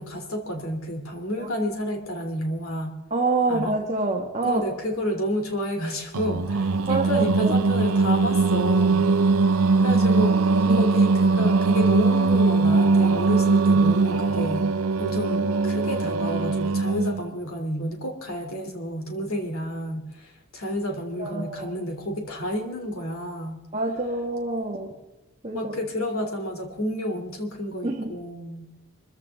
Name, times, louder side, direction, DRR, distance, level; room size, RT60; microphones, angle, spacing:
voice 1, 0.0-3.0 3.5-3.8 4.4-9.1 9.8-10.4 10.8-14.7 15.0-23.6 25.5-28.7, equal, 70° left, 4 dB, 3.0 m, -30 dB
voice 2, 3.1-4.7 6.9-7.5 9.7-9.8 10.7-10.9 21.2-21.8 23.7-24.9 25.4-25.7 27.8-28.2, right 3 dB, 30° right, 0 dB, 1.6 m, -27 dB
Singing, 6.1-17.3, right 3 dB, 80° right, 0.8 m, -21 dB
24.0 x 15.0 x 3.7 m, 1.0 s
head